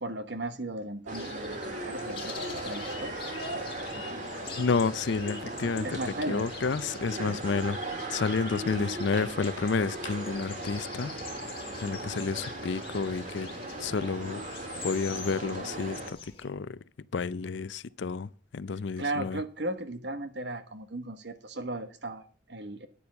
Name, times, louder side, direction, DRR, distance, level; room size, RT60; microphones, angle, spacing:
voice 1, 0.0-3.1 5.8-6.4 8.5-9.0 19.0-22.9, right 2 dB, 60° right, 1.4 m, -36 dB
sound 1, 1.1-16.4, left 6 dB, 30° left, 2.1 m, -46 dB
sound 2, 1.1-16.1, right 1 dB, 40° right, 2.3 m, -38 dB
voice 2, 4.6-7.8 8.1-11.1 11.8-13.5 13.8-14.4 14.8-16.8 17.1-19.4, left 4 dB, 70° left, 0.5 m, -30 dB
10.0 x 7.1 x 6.3 m
head